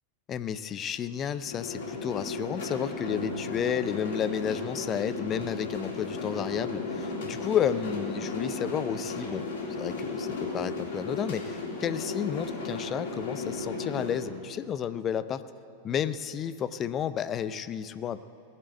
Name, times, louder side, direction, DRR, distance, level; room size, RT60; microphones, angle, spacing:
voice 1, 0.3-9.4 9.8-15.4 15.8-18.2, left 8 dB, 30° left, 14 dB, 0.5 m, -31 dB
sound 1, 1.5-14.2, left 3 dB, 55° left, 3.3 m, -35 dB
18.0 x 7.6 x 8.1 m, 2.5 s
figure-of-eight pair, 90°, 0 cm